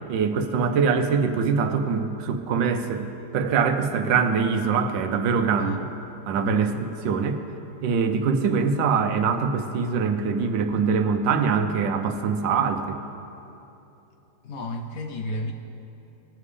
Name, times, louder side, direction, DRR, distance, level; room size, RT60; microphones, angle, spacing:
voice 1, 0.1-3.0 3.3-5.9 6.3-6.7 7.0-7.4 7.8-13.0, right 5 dB, 85° right, 7 dB, 1.4 m, -23 dB
voice 2, 6.4-6.8 14.4-15.5, left 1 dB, 65° left, 4 dB, 1.0 m, -31 dB
19.5 x 7.2 x 3.3 m, 2.9 s
omnidirectional pair, 1.9 m